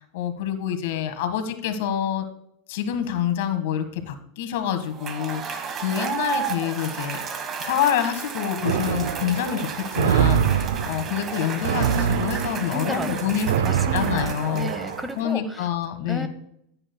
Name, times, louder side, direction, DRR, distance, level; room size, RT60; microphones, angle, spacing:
voice 1, 0.0-2.2 2.7-7.2 7.6-14.7 15.1-16.3, left 9 dB, 70° left, 8 dB, 1.6 m, -27 dB
Cheering / Applause / Crowd, 4.8-15.3, right 6 dB, 30° right, 1.3 m, -33 dB
sound 1, 8.7-15.1, right 9 dB, 85° right, 0.6 m, -25 dB
voice 2, 12.7-15.7 16.1-16.3, equal, 5° right, 9 dB, 0.9 m, -34 dB
15.5 x 8.7 x 2.3 m, 0.74 s
supercardioid pair, 130°, 0 cm